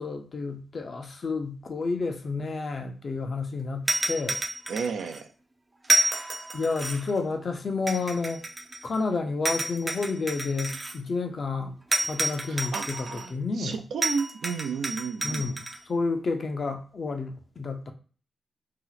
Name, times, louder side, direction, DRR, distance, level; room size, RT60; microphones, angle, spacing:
voice 1, 0.0-4.4 6.5-8.4 8.8-11.7 12.0-13.0 13.3-13.8 15.2-17.9, left 4 dB, 50° left, 6 dB, 0.5 m, -30 dB
sound 1, 3.9-5.2 5.8-7.2 7.9-9.0 9.5-11.0 11.9-13.3 14.0-15.8, right 1 dB, 25° right, 0.4 m, -29 dB
voice 2, 4.7-5.3 12.5-15.6, right 5 dB, 90° right, 6 dB, 0.4 m, -33 dB
2.9 x 2.1 x 3.9 m, 0.39 s
cardioid pair, 95°, 0 cm